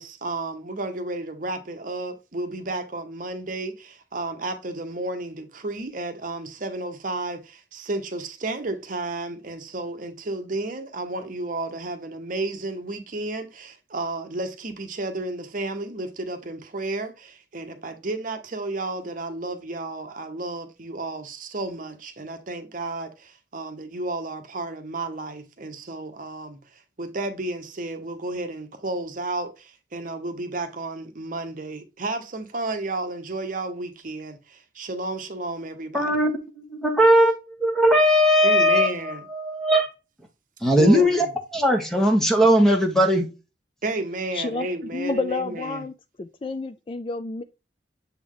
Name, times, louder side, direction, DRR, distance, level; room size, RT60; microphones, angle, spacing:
voice 1, 0.0-36.1 38.4-39.2 40.8-41.2 43.8-45.9, right 2 dB, 50° right, 0.9 m, -32 dB
voice 2, 35.9-36.3 36.6-37.3 37.6-39.9 40.6-41.3 41.5-43.3, equal, 5° left, 1.1 m, -19 dB
voice 3, 44.3-44.7 44.9-45.9 46.2-47.4, left 3 dB, 30° left, 0.3 m, -29 dB
7.3 x 3.4 x 3.8 m
head